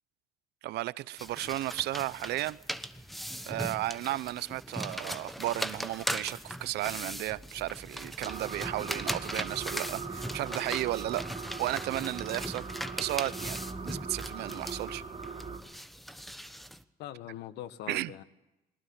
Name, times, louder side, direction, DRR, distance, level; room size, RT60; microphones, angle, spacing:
voice 1, 0.6-2.6 3.5-11.3 11.6-12.6 13.0-15.0 17.9-18.1, right 16 dB, 80° right, 0.8 m, -34 dB
sound 1, 1.2-16.8, equal, ahead, 1.2 m, -39 dB
sound 2, 8.2-15.6, right 5 dB, 35° right, 4.6 m, -41 dB
voice 2, 17.0-18.2, left 12 dB, 85° left, 1.4 m, -42 dB
22.0 x 19.0 x 9.5 m
cardioid pair, 110°, 17 cm